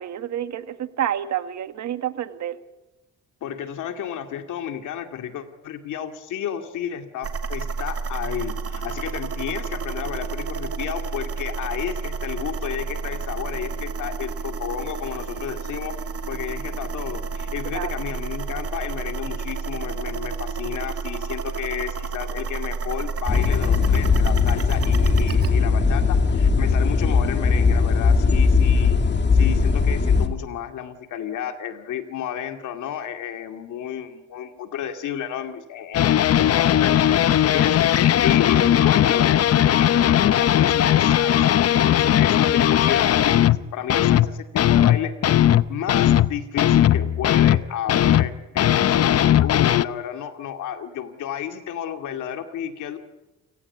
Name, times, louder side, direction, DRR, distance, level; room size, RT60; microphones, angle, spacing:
voice 1, 0.0-2.6 17.7-17.9, right 10 dB, 65° right, 10 dB, 1.6 m, -29 dB
voice 2, 3.4-16.0 16.3-29.0 29.3-53.0, left 9 dB, 80° left, 6 dB, 2.4 m, -32 dB
sound 1, 7.2-25.5, right 5 dB, 50° right, 2.6 m, -30 dB
sound 2, 23.3-30.3, left 5 dB, 35° left, 2.4 m, -19 dB
sound 3, 35.9-43.6 43.9-44.3 44.6-47.6 47.9-49.8, left 11 dB, 55° left, 0.7 m, -18 dB
29.0 x 17.0 x 8.4 m, 1.1 s
cardioid pair, 90°, 30 cm